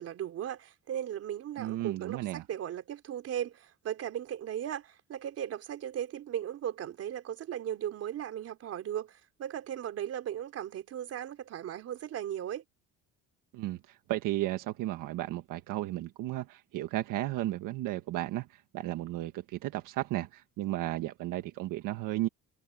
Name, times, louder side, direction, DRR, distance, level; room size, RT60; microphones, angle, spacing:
voice 1, 0.0-12.6, right 10 dB, 50° right, 3.9 m, -37 dB
voice 2, 1.6-2.4 13.5-22.3, right 15 dB, 85° right, 1.5 m, -34 dB
cardioid pair, 170°, 31 cm